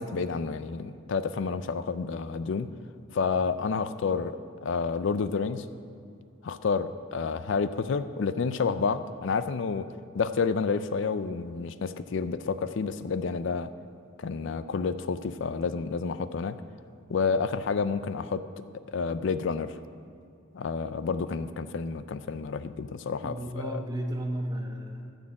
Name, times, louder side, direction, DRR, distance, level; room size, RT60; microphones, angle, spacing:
voice 1, 0.0-2.7 3.1-5.7 6.4-9.9 10.1-13.7 14.2-16.6 17.1-18.4 18.9-19.8 20.5-23.4 23.6-23.8, left 5 dB, 60° left, 12 dB, 0.4 m, -29 dB
voice 2, 23.2-25.1, right 1 dB, 20° right, 2 dB, 1.0 m, -33 dB
13.5 x 6.4 x 7.6 m, 2.5 s
head